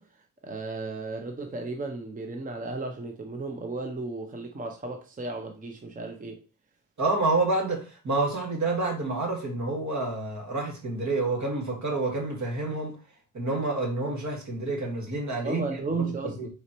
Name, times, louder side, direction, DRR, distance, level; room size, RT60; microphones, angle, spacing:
voice 1, 0.0-6.4 15.4-16.5, right 3 dB, 25° right, 0.6 m, -34 dB
voice 2, 7.0-13.0 13.3-15.6 16.4-16.5, right 2 dB, 60° right, 1.8 m, -28 dB
4.2 x 4.1 x 3.0 m
cardioid pair, 95°, 33 cm